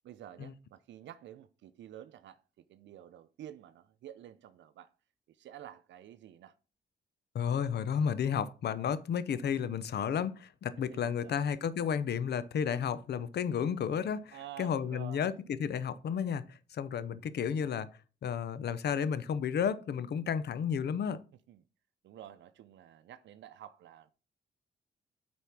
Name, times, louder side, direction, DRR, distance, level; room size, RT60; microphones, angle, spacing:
voice 1, 0.0-2.4 2.7-4.9 5.3-6.5 10.9-11.4 14.3-15.4 21.5-21.6 22.0-24.1, right 11 dB, 85° right, 0.6 m, -50 dB
voice 2, 7.3-15.3 15.6-17.9 18.2-21.2, left 7 dB, 65° left, 0.7 m, -32 dB
8.2 x 4.4 x 5.9 m
cardioid pair, 95°, 18 cm